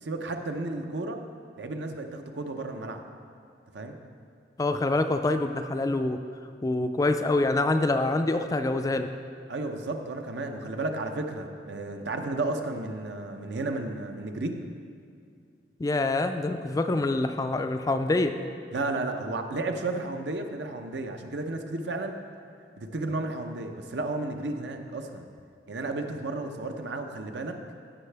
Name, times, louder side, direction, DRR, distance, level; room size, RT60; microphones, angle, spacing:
voice 1, 0.0-1.2 1.6-3.0 3.7-4.0 9.5-14.6 18.7-22.1 22.8-25.3 25.7-27.6, right 2 dB, 80° right, 5 dB, 0.7 m, -33 dB
voice 2, 4.6-6.2 6.6-9.1 15.8-18.4, left 2 dB, 20° left, 8 dB, 0.3 m, -25 dB
16.0 x 5.7 x 3.4 m, 2.4 s
head